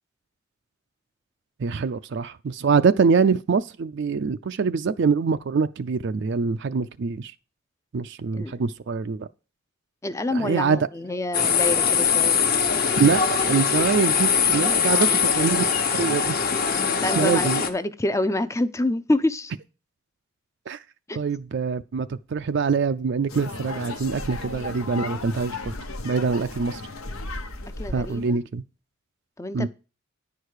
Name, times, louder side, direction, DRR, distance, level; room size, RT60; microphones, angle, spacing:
voice 1, 1.6-7.3 7.9-9.3 10.3-10.8 13.0-15.6 16.0-16.4 17.2-17.6 20.7-20.8 21.1-25.8 26.0-26.8 27.9-28.6 29.5-29.7, right 5 dB, 55° right, 0.4 m, -24 dB
voice 2, 10.0-12.4 14.9-15.2 17.0-19.5 21.1-21.2 27.8-28.4 29.4-29.7, left 2 dB, 15° left, 0.5 m, -27 dB
sound 1, 11.3-17.7, left 6 dB, 45° left, 1.1 m, -22 dB
sound 2, 23.3-28.3, left 2 dB, 90° left, 1.2 m, -35 dB
10.5 x 4.8 x 6.5 m
head